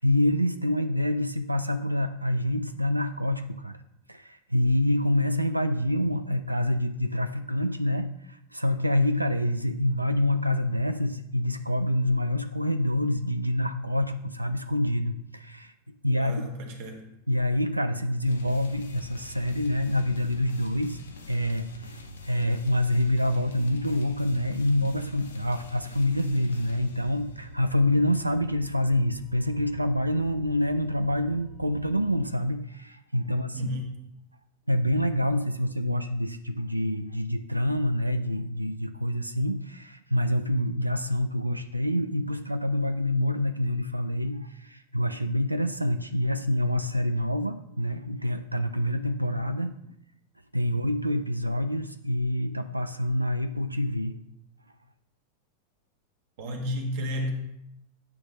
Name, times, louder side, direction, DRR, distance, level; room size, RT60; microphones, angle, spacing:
voice 1, 0.0-3.8 4.1-15.7 16.0-16.4 17.3-21.0 21.3-33.7 34.7-49.7 50.5-54.2, left 1 dB, 85° right, 9 dB, 0.4 m, -26 dB
voice 2, 16.2-17.1 24.8-24.9 33.5-33.8 56.4-57.3, equal, 50° right, 2 dB, 1.3 m, -32 dB
sound 1, 18.2-32.3, left 3 dB, 65° left, 1.1 m, -46 dB
8.7 x 3.3 x 6.0 m, 0.79 s
figure-of-eight pair, 90°, 0 cm